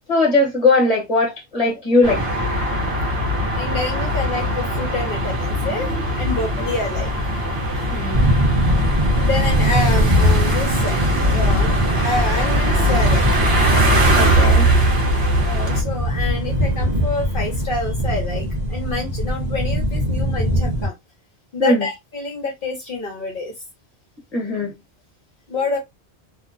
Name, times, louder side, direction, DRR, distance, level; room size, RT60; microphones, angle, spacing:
voice 1, 0.1-2.2 7.9-8.2 14.2-14.7 21.6-21.9 24.3-24.7, left 2 dB, 35° left, 1.1 m, -19 dB
sound 1, 2.0-15.8, right 1 dB, 70° right, 1.1 m, -20 dB
voice 2, 3.6-7.1 7.5-7.6 9.2-13.3 15.4-20.9 21.5-23.5 25.5-25.8, left 2 dB, 55° left, 0.9 m, -27 dB
sound 2, 8.1-20.9, equal, 45° right, 0.8 m, -21 dB
2.7 x 2.1 x 2.4 m
omnidirectional pair, 1.1 m